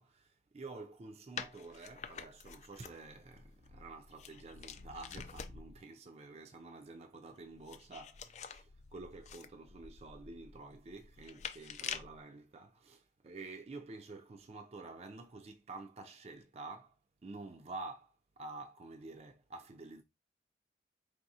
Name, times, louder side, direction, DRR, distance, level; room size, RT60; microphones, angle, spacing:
voice 1, 0.0-17.0 17.2-20.0, right 3 dB, 35° right, 0.4 m, -49 dB
sound 1, 1.4-5.8 7.3-12.2, left 7 dB, 40° left, 0.3 m, -47 dB
4.7 x 3.3 x 2.7 m
head